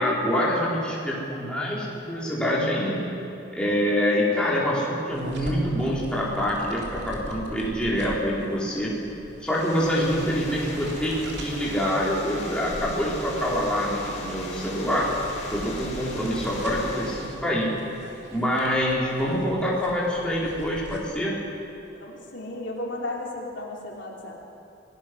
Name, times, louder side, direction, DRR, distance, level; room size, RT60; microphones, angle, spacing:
voice 1, 0.0-3.1 3.6-8.9 9.4-15.2 15.5-17.7 18.3-21.3, equal, 5° left, -6 dB, 4.5 m, -25 dB
sound 1, 5.1-21.0, equal, 55° right, 3.4 m, -42 dB
sound 2, 9.4-17.4, left 2 dB, 35° left, 6.0 m, -38 dB
voice 2, 21.9-24.3, left 1 dB, 70° left, -1 dB, 3.2 m, -34 dB
28.0 x 19.0 x 6.3 m, 2.8 s
head